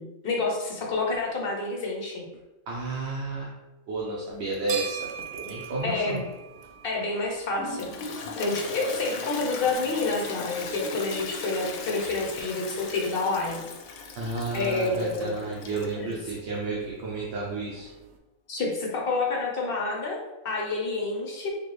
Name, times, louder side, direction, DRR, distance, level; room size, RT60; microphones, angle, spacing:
voice 1, 0.0-2.3 5.8-6.2 6.8-13.6 14.5-15.4 15.9-16.1 18.5-21.5, left 3 dB, 55° left, -1 dB, 0.7 m, -29 dB
voice 2, 2.7-3.5 3.9-6.2 14.1-17.9, right 3 dB, 60° right, -4 dB, 0.9 m, -32 dB
sound 1, 4.3-18.2, right 8 dB, 85° right, 1.0 m, -45 dB
Toilet flush, 7.6-16.1, left 4 dB, 90° left, 1.0 m, -38 dB
4.4 x 2.5 x 3.0 m, 1.1 s
omnidirectional pair, 1.4 m